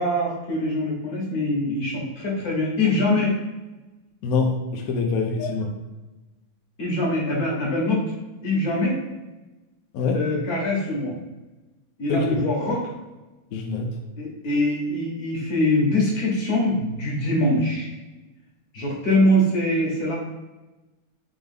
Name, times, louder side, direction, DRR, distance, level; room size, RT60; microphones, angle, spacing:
voice 1, 0.0-3.3 5.4-5.7 6.8-8.1 8.4-9.0 10.1-11.2 12.0-12.8 14.2-17.9 18.7-20.1, left 1 dB, 45° left, -4 dB, 1.7 m, -23 dB
voice 2, 4.2-5.7 9.9-10.2 12.1-12.4 13.5-13.9, left 4 dB, 75° left, 2 dB, 0.8 m, -24 dB
4.1 x 3.4 x 3.6 m, 1.1 s
omnidirectional pair, 2.4 m